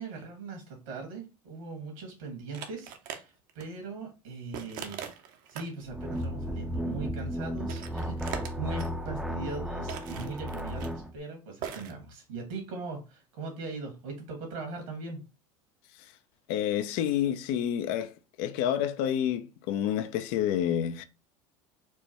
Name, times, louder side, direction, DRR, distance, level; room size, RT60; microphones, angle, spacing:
voice 1, 0.0-15.2, right 3 dB, 75° right, 1.8 m, -40 dB
sound 1, 2.5-3.2 3.5-3.6 4.5-5.7 6.1-6.2 7.2-7.3 7.6-8.9 9.9-10.9 11.6-11.9, right 8 dB, 55° right, 0.7 m, -41 dB
sound 2, 5.9-11.1, equal, ahead, 0.5 m, -34 dB
voice 2, 16.5-18.1 18.4-21.0, left 10 dB, 65° left, 0.5 m, -28 dB
4.4 x 2.2 x 2.9 m
hypercardioid pair, 90°, 17 cm